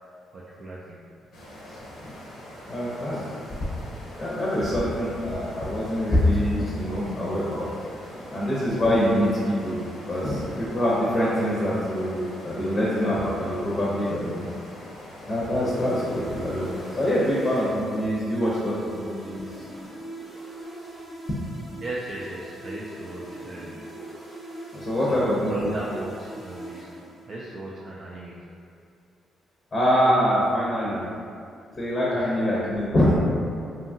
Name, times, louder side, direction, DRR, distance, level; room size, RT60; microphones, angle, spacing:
voice 1, 0.3-1.0 8.1-8.4 21.8-23.8 25.0-26.9 27.3-28.5 32.1-32.3, right 2 dB, 45° right, -6 dB, 0.3 m, -37 dB
sound 1, 1.3-17.7, left 1 dB, 80° left, 0.7 m, -43 dB
voice 2, 1.7-2.1 2.7-3.2 4.0-7.7 8.3-14.5 15.3-19.6 24.7-25.7 29.7-31.0 31.7-33.3, equal, 35° left, -6 dB, 0.6 m, -25 dB
sound 2, 15.7-27.5, right 1 dB, 5° right, 0.8 m, -41 dB
2.7 x 2.3 x 2.6 m, 2.4 s
cardioid pair, 90°, 0 cm